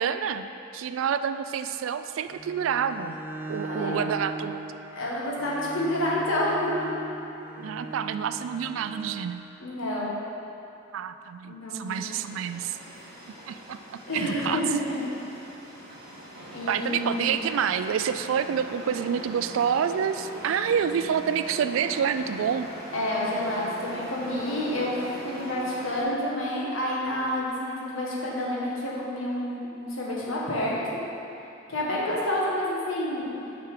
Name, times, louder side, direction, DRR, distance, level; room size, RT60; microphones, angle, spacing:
voice 1, 0.0-3.2 3.5-4.7 7.6-9.4 10.9-12.8 13.5-13.8 14.1-14.6 16.7-22.7, right 7 dB, 75° right, 11 dB, 0.3 m, -28 dB
Bowed string instrument, 2.3-9.3, right 3 dB, 10° right, 0.5 m, -39 dB
voice 2, 4.9-6.9 9.6-10.2 11.5-12.0 14.1-15.0 16.5-17.4 22.9-30.8 31.7-33.3, left 1 dB, 80° left, -5 dB, 1.6 m, -29 dB
sound 1, 11.9-26.0, right 1 dB, 50° right, 1.5 m, -42 dB
6.5 x 6.1 x 4.9 m, 3.0 s
head